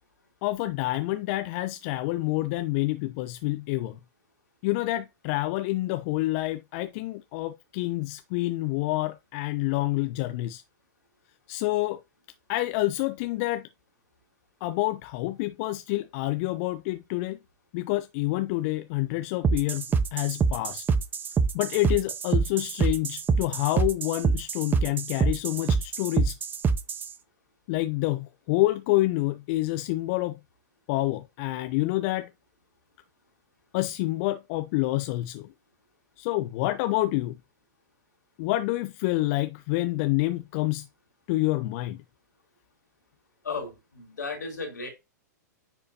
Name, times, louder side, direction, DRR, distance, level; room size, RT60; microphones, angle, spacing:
voice 1, 0.4-4.0 4.6-10.6 11.5-12.0 12.5-13.7 14.6-17.4 17.7-19.8 20.1-20.8 21.5-26.4 27.7-30.4 30.9-32.3 33.7-35.5 36.2-37.4 38.4-40.9 41.3-42.0, left 18 dB, 45° left, 0.6 m, -28 dB
sound 1, 19.4-27.1, right 5 dB, 20° right, 0.6 m, -25 dB
voice 2, 43.4-44.9, left 4 dB, 80° left, 3.2 m, -35 dB
9.8 x 4.3 x 2.8 m
figure-of-eight pair, 100°, 10 cm